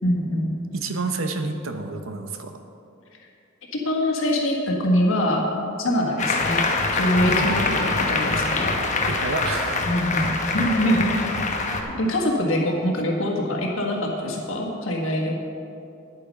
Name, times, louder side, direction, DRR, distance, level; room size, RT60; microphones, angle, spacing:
voice 1, 0.0-0.5 3.7-5.5 5.8-8.8 9.8-11.1 12.0-15.4, left 1 dB, 70° left, 0 dB, 1.7 m, -24 dB
voice 2, 0.7-2.6 7.2-7.5 9.1-9.9, right 3 dB, 75° right, 6 dB, 0.9 m, -29 dB
Applause, 6.2-11.8, left 3 dB, 35° left, 1.0 m, -24 dB
10.0 x 8.7 x 5.4 m, 2.7 s
head